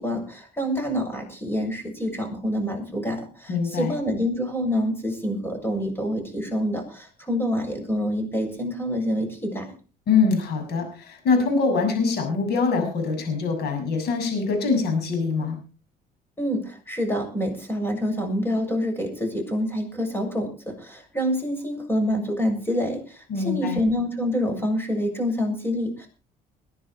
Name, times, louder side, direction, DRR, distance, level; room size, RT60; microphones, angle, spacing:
voice 1, 0.0-9.7 16.4-26.1, equal, 15° left, 4 dB, 7.4 m, -27 dB
voice 2, 3.5-3.9 10.1-15.6 23.3-23.8, left 4 dB, 70° left, 5 dB, 6.6 m, -23 dB
21.5 x 11.0 x 4.4 m, 0.35 s
cardioid pair, 110°, 17 cm